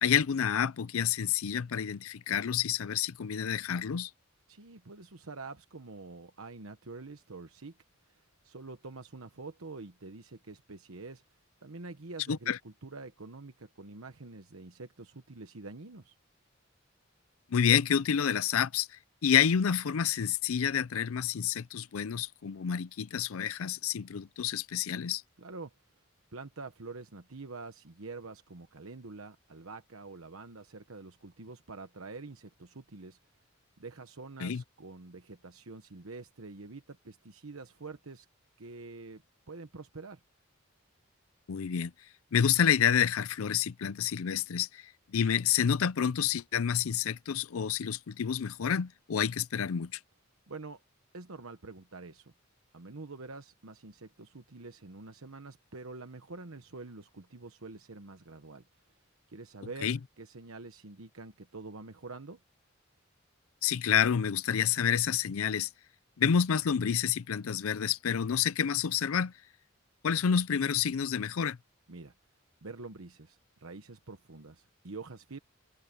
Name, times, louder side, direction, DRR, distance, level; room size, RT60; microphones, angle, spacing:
voice 1, 0.0-4.1 12.3-12.6 17.5-25.2 34.4-34.6 41.5-41.9 42.3-50.0 59.8-60.0 63.6-65.7 66.2-69.3 70.0-71.6, left 8 dB, 85° left, 0.5 m, -29 dB
voice 2, 4.5-7.8 8.0-11.2 11.6-16.1 25.4-25.7 26.3-33.2 33.8-38.3 38.6-39.2 39.5-40.2 50.5-50.8 51.1-52.3 52.7-58.6 59.3-62.4 71.9-72.1 72.6-75.4, right 3 dB, 85° right, 1.1 m, -46 dB
head